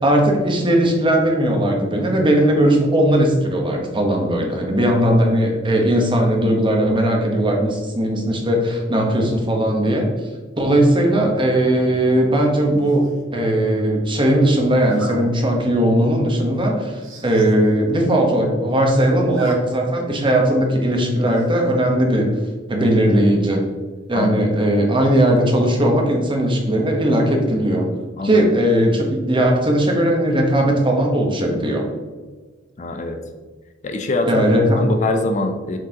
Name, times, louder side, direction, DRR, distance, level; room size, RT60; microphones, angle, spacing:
voice 1, 0.0-10.1 10.5-22.3 22.7-23.6 24.1-27.9 28.2-31.9 34.3-34.8, right 1 dB, 25° right, 1 dB, 1.1 m, -18 dB
Zipper (clothing), 12.8-13.2 14.8-15.2 15.7-15.9 16.2-16.3 16.5-16.6 16.9-17.5 17.9-18.0 18.2-18.7 19.0-19.5 19.9-20.0 21.3-21.7, right 2 dB, 75° right, 1.4 m, -35 dB
voice 2, 24.1-24.5 28.2-28.4 32.8-33.2 33.8-34.4 34.7-35.8, left 2 dB, 40° left, 5 dB, 0.5 m, -23 dB
7.6 x 4.9 x 2.9 m, 1.4 s
head